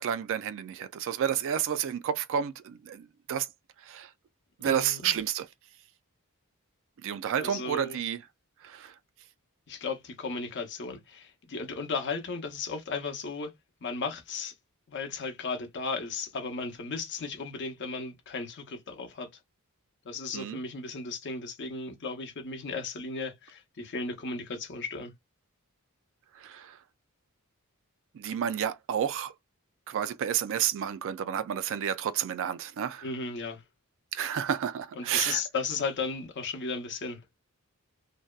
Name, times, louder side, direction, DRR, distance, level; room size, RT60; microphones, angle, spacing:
voice 1, 0.0-3.5 3.8-4.1 4.6-5.5 7.0-8.2 8.6-9.0 20.3-20.6 26.3-26.8 28.1-29.3 29.9-33.1 34.1-35.4, right 9 dB, 60° right, 0.3 m, -30 dB
voice 2, 4.6-5.1 7.4-8.0 9.7-13.5 13.8-14.5 14.9-19.3 20.0-25.1 33.0-33.6 35.0-37.2, left 4 dB, 55° left, 0.6 m, -35 dB
2.6 x 2.1 x 2.2 m
head